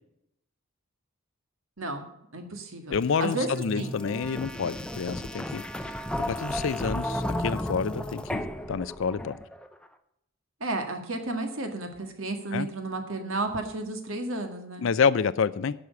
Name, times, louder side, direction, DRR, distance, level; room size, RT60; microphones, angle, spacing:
voice 1, 1.8-2.1 2.3-3.5 3.7-4.0 10.6-14.9, right 2 dB, 75° right, 5 dB, 1.8 m, -32 dB
voice 2, 2.9-5.6 6.3-8.4 8.7-9.4 12.5-12.7 14.8-15.7, left 6 dB, 65° left, 17 dB, 0.4 m, -28 dB
sound 1, 2.9-9.7, left 1 dB, 5° left, 0.6 m, -34 dB
10.5 x 6.3 x 8.2 m, 0.80 s
head